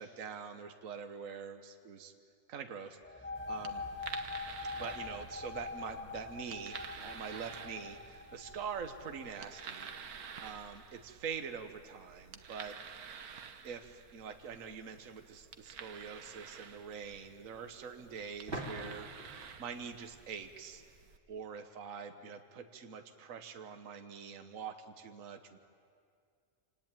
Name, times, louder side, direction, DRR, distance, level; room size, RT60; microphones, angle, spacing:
voice 1, 0.0-2.1 2.5-3.8 4.7-9.9 10.4-12.8 13.6-19.1 19.4-20.8 21.3-25.6, right 6 dB, 65° right, 7 dB, 1.5 m, -44 dB
sound 1, 3.0-10.5, left 3 dB, 10° left, 0.7 m, -44 dB
sound 2, 3.4-21.2, right 7 dB, 80° right, 1.6 m, -50 dB
sound 3, 18.5-21.1, right 1 dB, 35° right, 3.7 m, -45 dB
26.5 x 19.0 x 9.1 m, 2.2 s
omnidirectional pair, 1.5 m